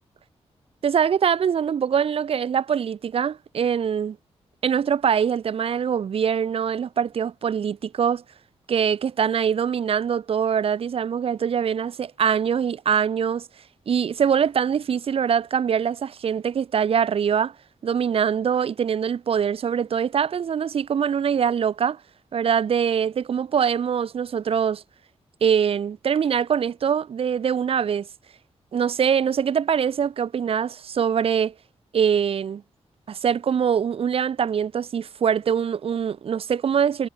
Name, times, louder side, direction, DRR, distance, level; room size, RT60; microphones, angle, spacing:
voice 1, 0.8-4.2 4.6-8.2 8.7-13.5 13.9-17.5 17.8-22.0 22.3-24.8 25.4-28.1 28.7-31.5 31.9-32.6 33.1-37.1, right 7 dB, 60° right, 1.2 m, -23 dB
wide cardioid pair, 130°, 11 cm